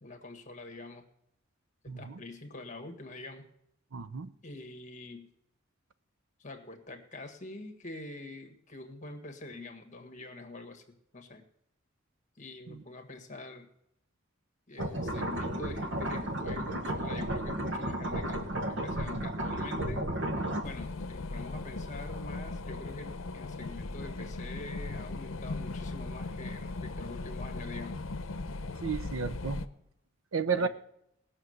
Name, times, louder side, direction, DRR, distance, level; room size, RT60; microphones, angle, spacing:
voice 1, 0.0-1.0 1.8-3.5 4.4-5.3 6.4-10.8 11.1-11.4 12.3-13.7 14.7-20.1 20.6-28.0 30.5-30.7, left 2 dB, 40° left, 1.7 m, -45 dB
voice 2, 1.9-2.2 3.9-4.3 12.7-12.8 28.8-29.7 30.3-30.7, right 5 dB, 80° right, 0.7 m, -32 dB
sound 1, 14.8-20.7, right 1 dB, 60° right, 1.4 m, -33 dB
sound 2, 20.6-29.7, left 3 dB, 80° left, 0.8 m, -38 dB
18.5 x 6.5 x 7.9 m
head